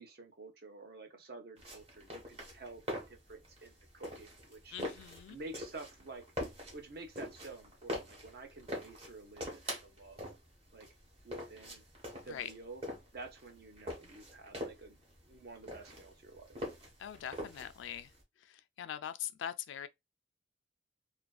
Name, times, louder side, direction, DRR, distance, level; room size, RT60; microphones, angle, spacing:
voice 1, 0.0-4.8 5.3-6.2 6.7-10.2 10.7-10.9 11.2-11.8 12.2-12.8 13.1-15.0 15.3-16.6, right 3 dB, 55° right, 0.6 m, -50 dB
sound 1, 1.6-18.2, equal, 30° right, 0.9 m, -44 dB
voice 2, 4.7-5.4 12.3-12.5 17.0-18.1 18.4-19.9, left 10 dB, 85° left, 0.3 m, -42 dB
2.4 x 2.2 x 2.3 m
head